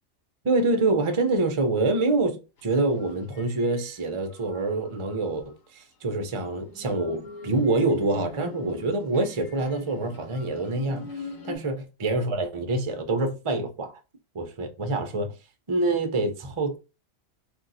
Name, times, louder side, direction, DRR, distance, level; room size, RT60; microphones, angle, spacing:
voice 1, 0.4-11.1 11.4-13.9 14.3-15.3 15.7-16.8, right 2 dB, 40° right, 0.5 m, -26 dB
sound 1, 2.6-4.0 4.3-5.3 6.1-11.6, left 2 dB, 85° left, 1.3 m, -42 dB
2.6 x 2.4 x 3.9 m
omnidirectional pair, 1.4 m